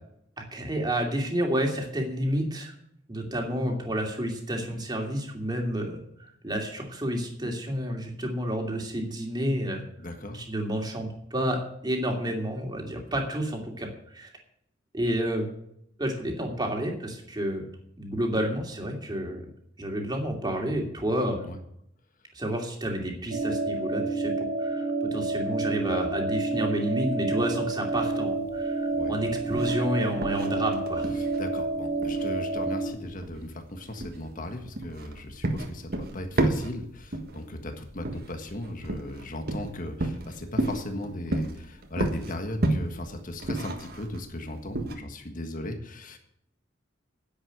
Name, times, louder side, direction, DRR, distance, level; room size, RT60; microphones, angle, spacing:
voice 1, 0.5-2.7 3.1-6.0 6.4-9.8 10.3-14.3 14.9-15.5 16.0-17.6 18.0-19.4 19.8-21.5 22.3-31.1, equal, 20° right, 1 dB, 2.7 m, -30 dB
voice 2, 10.0-10.4 21.4-21.6 28.9-29.1 31.2-46.2, left 1 dB, 45° left, 5 dB, 1.6 m, -37 dB
sound 1, 23.3-32.9, right 3 dB, 70° right, 3.1 m, -29 dB
sound 2, 27.9-44.9, right 1 dB, 55° right, 1.6 m, -32 dB
10.5 x 7.9 x 9.2 m, 0.73 s
head